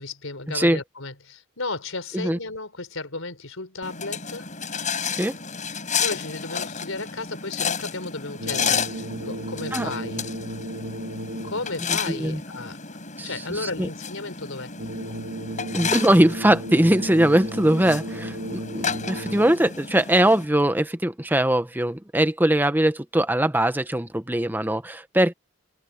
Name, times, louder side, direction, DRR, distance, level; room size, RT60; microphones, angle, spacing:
voice 1, 0.0-4.5 6.0-10.2 11.4-14.7, left 3 dB, 70° left, 4.5 m, -34 dB
sound 1, 3.8-20.4, left 6 dB, 35° left, 6.4 m, -32 dB
sound 2, 8.4-11.8 14.8-19.8, right 1 dB, 60° right, 1.7 m, -34 dB
voice 2, 11.9-12.4 13.2-13.3 13.6-13.9 15.7-25.3, right 1 dB, 10° right, 1.0 m, -21 dB
head